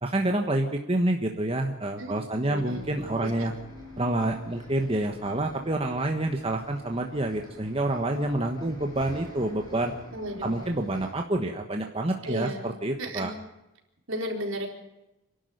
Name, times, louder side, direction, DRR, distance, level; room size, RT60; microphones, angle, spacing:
voice 1, 0.0-3.5 4.0-9.9 10.4-13.3, right 1 dB, 25° right, 3 dB, 1.3 m, -28 dB
voice 2, 2.0-3.5 10.1-10.8 12.2-12.7 13.0-13.3 14.1-14.7, equal, 65° right, 1 dB, 4.1 m, -35 dB
Bus, 2.5-11.1, equal, 20° left, 7.7 m, -47 dB
26.5 x 12.0 x 9.3 m, 0.94 s
head